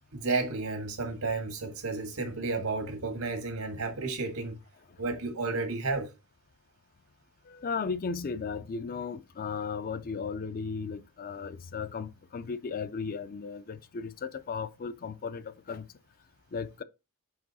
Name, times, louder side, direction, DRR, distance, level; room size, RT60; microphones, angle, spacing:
voice 1, 0.1-4.6 5.0-6.1, right 3 dB, 80° right, 1.6 m, -32 dB
voice 2, 7.4-15.9 16.5-16.8, left 5 dB, 40° left, 0.4 m, -36 dB
5.5 x 4.8 x 4.0 m
head